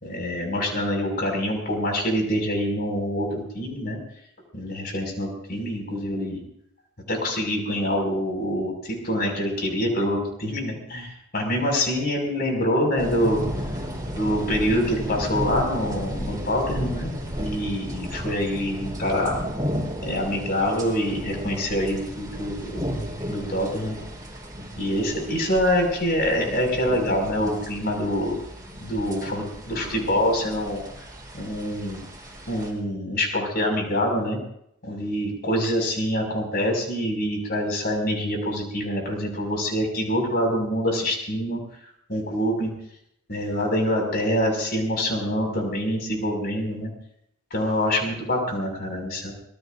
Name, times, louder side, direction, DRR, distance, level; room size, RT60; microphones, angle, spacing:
voice 1, 0.0-4.0 4.5-6.4 7.1-13.4 14.1-19.4 20.0-22.8 23.3-24.0 24.8-28.4 28.8-30.8 31.3-32.0 32.5-34.4 34.8-41.6 42.1-42.7 43.3-46.9 47.5-49.3, equal, 45° left, 2 dB, 5.9 m, -25 dB
sound 1, 13.0-32.7, equal, 20° right, 4.2 m, -34 dB
26.0 x 20.0 x 2.7 m, 0.72 s
head